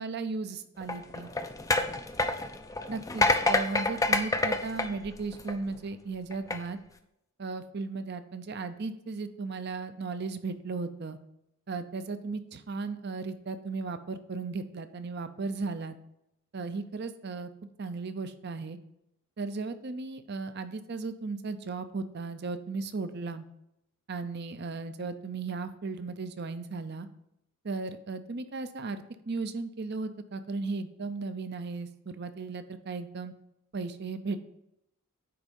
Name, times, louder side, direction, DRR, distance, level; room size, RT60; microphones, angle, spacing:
voice 1, 0.0-1.3 2.9-6.8 7.4-11.2 11.7-16.0 16.5-17.5 17.8-18.8 19.4-23.5 24.1-27.1 27.6-33.3 33.7-34.5, right 4 dB, 50° right, 10 dB, 0.5 m, -36 dB
sound 1, 0.8-5.8 6.3-6.6, left 2 dB, 15° left, 0.4 m, -28 dB
9.4 x 3.6 x 5.2 m, 0.81 s
head